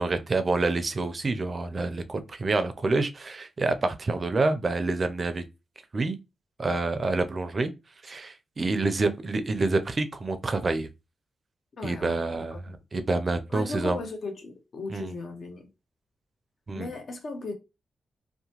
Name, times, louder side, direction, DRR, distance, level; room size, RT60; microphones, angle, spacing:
voice 1, 0.0-5.4 5.9-6.2 6.6-7.7 8.0-10.9 11.8-12.6 12.9-14.0 14.9-15.1 16.7-16.9, right 3 dB, 40° right, 0.4 m, -27 dB
voice 2, 11.7-12.5 13.5-15.7 16.7-17.5, left 3 dB, 60° left, 0.7 m, -36 dB
2.8 x 2.1 x 2.8 m
cardioid pair, 90°, 0 cm